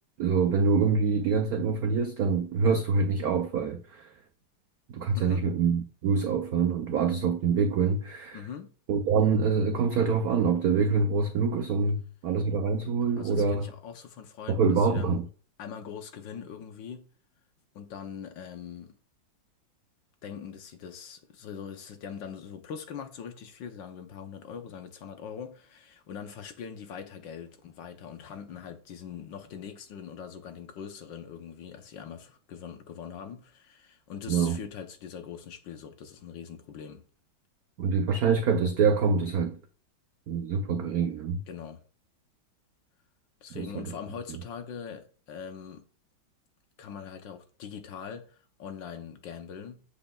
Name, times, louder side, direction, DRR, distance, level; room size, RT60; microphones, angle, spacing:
voice 1, 0.2-4.1 4.9-8.4 8.9-13.7 14.5-15.2 34.3-34.6 37.8-39.6 40.3-41.4 43.5-43.7, right 5 dB, 80° right, 0.8 m, -25 dB
voice 2, 5.1-5.5 8.3-8.8 13.0-15.2 15.6-17.1 17.7-19.0 20.2-37.0 41.5-41.8 43.4-45.8 46.8-49.8, left 7 dB, 65° left, 1.5 m, -42 dB
7.8 x 6.8 x 2.3 m
omnidirectional pair, 2.3 m